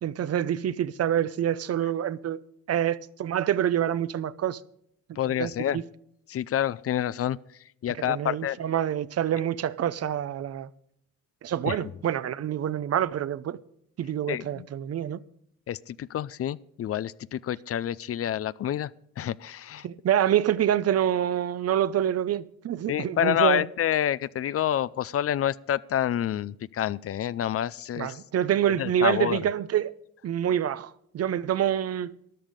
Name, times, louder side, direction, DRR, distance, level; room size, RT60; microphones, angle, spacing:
voice 1, 0.0-2.4 2.7-4.6 5.1-5.8 8.0-10.7 11.4-13.6 14.0-15.2 19.8-23.6 28.0-29.9 30.2-32.1, right 10 dB, 55° right, 0.7 m, -27 dB
voice 2, 5.2-5.8 6.3-7.4 7.8-8.6 11.6-11.9 14.3-14.7 15.7-18.9 19.2-19.9 22.9-28.2 28.8-29.4, left 10 dB, 50° left, 0.5 m, -28 dB
13.5 x 11.0 x 5.1 m
cardioid pair, 90°, 30 cm